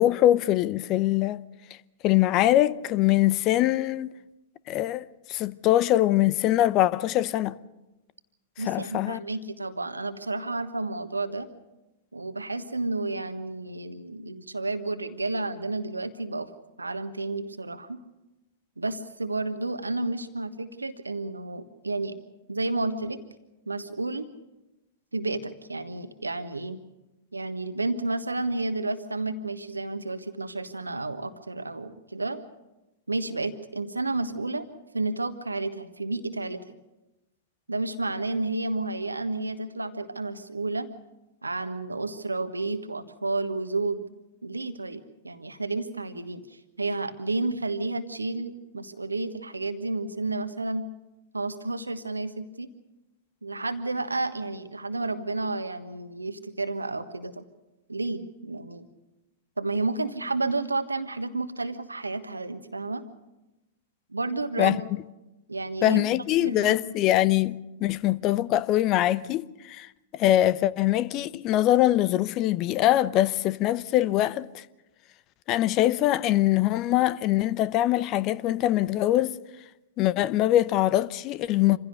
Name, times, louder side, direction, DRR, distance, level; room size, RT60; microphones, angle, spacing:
voice 1, 0.0-1.4 2.0-4.1 4.7-7.6 8.7-9.2 64.6-64.8 65.8-74.6 75.5-79.4 80.0-81.8, left 14 dB, 35° left, 0.7 m, -23 dB
voice 2, 8.6-11.5 12.1-16.5 16.8-18.0 18.8-22.2 22.5-23.2 23.7-24.3 25.1-26.8 27.3-32.4 33.1-34.6 34.9-36.8 37.7-40.9 41.4-44.1 44.4-50.8 51.3-52.7 53.4-57.4 57.9-58.9 59.6-63.0 64.1-64.9 65.5-66.1 66.4-66.9, right 2 dB, 85° right, 1.3 m, -31 dB
26.5 x 16.0 x 6.6 m
figure-of-eight pair, 100°, 0 cm